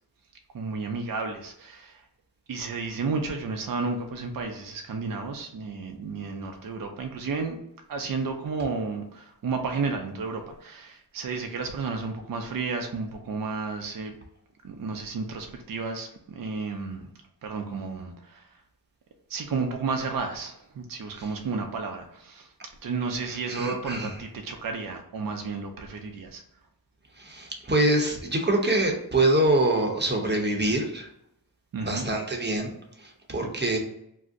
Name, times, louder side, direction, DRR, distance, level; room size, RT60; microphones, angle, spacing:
voice 1, 0.5-2.1 2.5-7.6 7.9-14.1 14.6-17.1 17.4-18.6 19.3-22.5 22.8-26.4 31.7-32.1, right 4 dB, 60° right, 4 dB, 0.5 m, -32 dB
voice 2, 23.5-24.1 27.2-31.1 31.8-32.7 33.3-33.8, right 1 dB, 25° right, 1 dB, 0.8 m, -24 dB
2.5 x 2.1 x 3.6 m, 0.76 s
cardioid pair, 50°, 38 cm